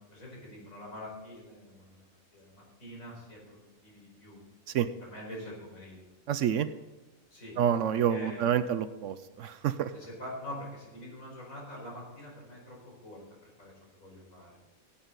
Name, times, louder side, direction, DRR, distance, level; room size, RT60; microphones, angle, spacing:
voice 1, 0.1-2.0 2.3-4.4 5.0-6.1 7.3-7.6 8.1-8.7 9.9-14.5, left 1 dB, 70° left, -3 dB, 5.1 m, -45 dB
voice 2, 6.3-6.7 7.6-9.9, right 9 dB, 70° right, 13 dB, 0.9 m, -28 dB
16.5 x 8.9 x 3.9 m, 1.1 s
omnidirectional pair, 1.5 m